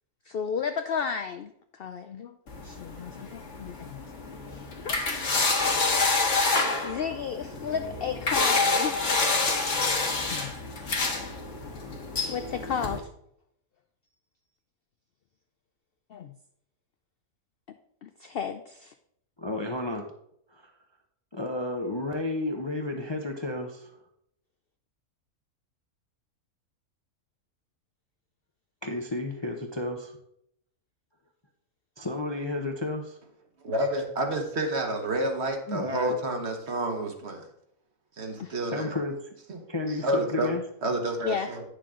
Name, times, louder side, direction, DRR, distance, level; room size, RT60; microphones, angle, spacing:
voice 1, 0.3-4.0 4.8-5.0 5.7-9.1 10.1-10.5 12.3-13.1 16.1-16.3 18.0-18.9 38.4-38.6 41.2-41.5, left 6 dB, 80° left, 8 dB, 0.5 m, -34 dB
sound 1, 2.5-13.0, left 3 dB, 55° left, 1.7 m, -28 dB
voice 2, 19.4-20.0 20.5-20.7 21.3-23.9 28.8-30.1 32.0-33.0 35.7-36.2 38.7-39.3 39.7-40.6, left 2 dB, 25° left, 3 dB, 0.5 m, -32 dB
voice 3, 33.6-37.5 38.2-38.9 39.5-39.6 40.0-40.5 40.8-41.6, right 1 dB, 50° right, 4 dB, 1.4 m, -29 dB
9.2 x 6.7 x 3.7 m, 0.73 s
omnidirectional pair, 1.6 m